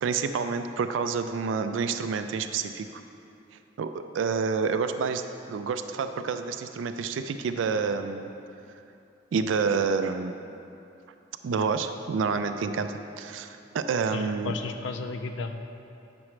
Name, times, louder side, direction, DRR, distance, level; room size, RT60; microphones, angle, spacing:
voice 1, 0.0-3.0 3.8-5.2 5.5-8.3 9.3-10.4 11.4-14.5, right 5 dB, 80° right, 9 dB, 0.3 m, -28 dB
voice 2, 14.1-15.6, left 3 dB, 70° left, 6 dB, 0.5 m, -33 dB
8.4 x 6.0 x 3.2 m, 2.7 s
head